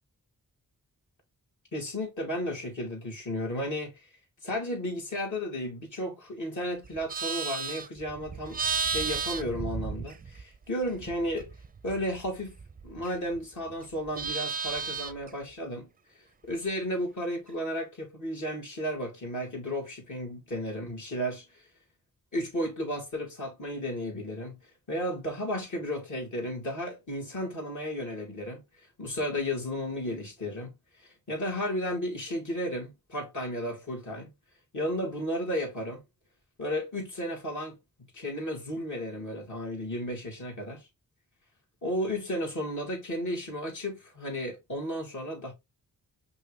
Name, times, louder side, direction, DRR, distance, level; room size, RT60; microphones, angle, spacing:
voice 1, 1.7-4.1 4.4-11.5 11.8-12.5 12.8-15.9 16.4-21.7 22.3-24.6 24.9-30.7 31.0-34.3 34.7-36.0 36.6-37.8 38.1-40.8 41.8-45.5, equal, 55° left, 2.5 m, -33 dB
Livestock farm animals working animals, 6.8-10.6 10.9-13.4 13.7-15.3, right 5 dB, 25° right, 0.4 m, -34 dB
5.4 x 2.9 x 3.2 m
cardioid pair, 65°, 35 cm